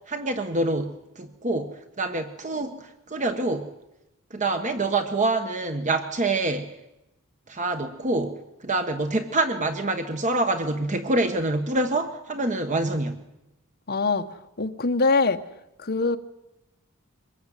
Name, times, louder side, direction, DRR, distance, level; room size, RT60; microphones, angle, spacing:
voice 1, 0.1-3.7 4.3-6.7 7.5-8.4 8.6-13.2, right 2 dB, 35° right, 7 dB, 1.3 m, -26 dB
voice 2, 13.9-15.4 15.8-16.2, left 3 dB, 45° left, 6 dB, 1.3 m, -23 dB
24.5 x 20.5 x 9.3 m, 0.93 s
head